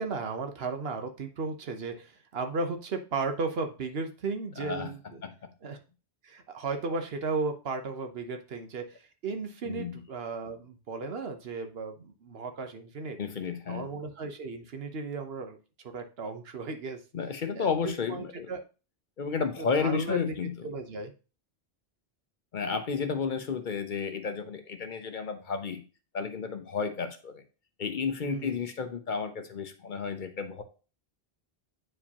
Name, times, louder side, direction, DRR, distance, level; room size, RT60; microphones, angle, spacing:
voice 1, 0.0-5.2 5.6-5.8 6.2-13.2 13.7-15.6 15.8-17.0 17.5-17.7 18.1-18.6 19.6-20.2 20.6-21.1 28.2-28.6, right 4 dB, 75° right, 6 dB, 1.1 m, -35 dB
voice 2, 4.6-4.9 5.2-5.3 9.6-10.0 13.2-13.9 17.1-18.5 19.2-20.7 22.5-25.8 26.1-27.4 27.8-30.6, left 5 dB, 55° left, 8 dB, 0.8 m, -32 dB
8.7 x 4.8 x 2.9 m, 0.34 s
omnidirectional pair, 1.0 m